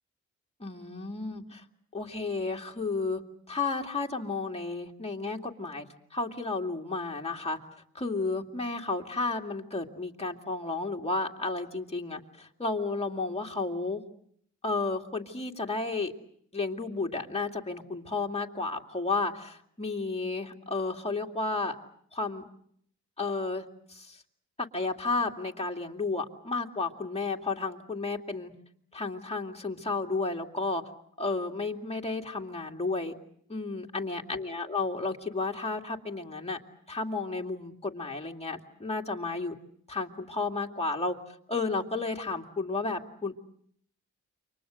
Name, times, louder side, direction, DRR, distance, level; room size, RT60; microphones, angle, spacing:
voice 1, 0.6-1.6 1.9-3.2 3.5-7.6 7.9-14.0 14.6-16.1 16.5-21.8 22.1-22.4 23.2-24.2 24.6-28.5 28.9-30.8 31.2-33.1 33.5-36.6 36.9-39.5 39.9-43.3, left 3 dB, 20° left, 2 dB, 2.4 m, -32 dB
29.0 x 25.0 x 6.4 m, 0.67 s
cardioid pair, 90°, 31 cm